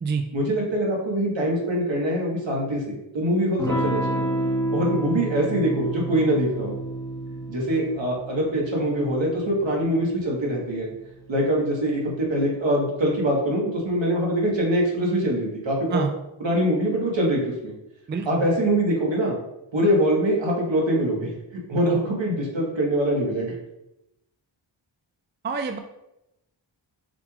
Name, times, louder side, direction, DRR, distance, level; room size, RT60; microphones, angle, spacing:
voice 1, 0.3-4.2 4.7-6.8 7.5-10.9 11.3-16.0 16.4-17.7 18.2-19.4 19.7-23.5, equal, 70° right, -2 dB, 1.4 m, -23 dB
Electric guitar / Strum, 3.6-11.9, right 1 dB, 10° left, 1.2 m, -30 dB
voice 2, 18.1-18.5 25.4-25.8, right 5 dB, 25° right, 6 dB, 0.4 m, -26 dB
6.8 x 3.1 x 2.4 m, 0.88 s
cardioid pair, 55°, 46 cm